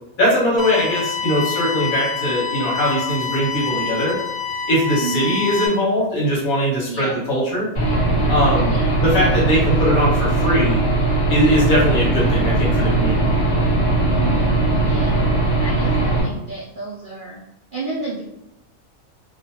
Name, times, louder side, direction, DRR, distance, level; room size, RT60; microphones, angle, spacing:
voice 1, 0.2-4.2 4.7-7.7 8.3-8.7 9.0-10.8 11.3-13.4, equal, 80° left, -5 dB, 1.5 m, -20 dB
sound 1, 0.6-5.7, left 6 dB, 20° left, 0.6 m, -27 dB
voice 2, 5.0-5.4 6.9-7.2 8.6-9.0 14.2-15.2 15.6-17.4 17.7-18.2, right 3 dB, 65° right, -6 dB, 0.5 m, -31 dB
Aircraft / Engine, 7.7-16.2, right 2 dB, 55° left, 1.3 m, -19 dB
3.1 x 2.1 x 2.8 m, 0.88 s
omnidirectional pair, 1.5 m